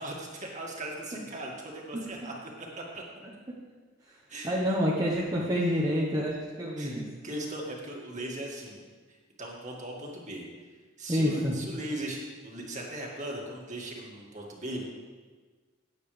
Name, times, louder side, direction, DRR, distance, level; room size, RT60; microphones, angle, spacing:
voice 1, 0.0-2.3 2.8-3.0 4.3-4.7 6.8-8.8 9.1-10.5 11.0-14.8, right 1 dB, 40° right, -1 dB, 2.1 m, -38 dB
voice 2, 4.4-7.0 11.1-11.5, equal, 20° right, -5 dB, 1.2 m, -28 dB
16.5 x 9.4 x 3.4 m, 1.4 s
head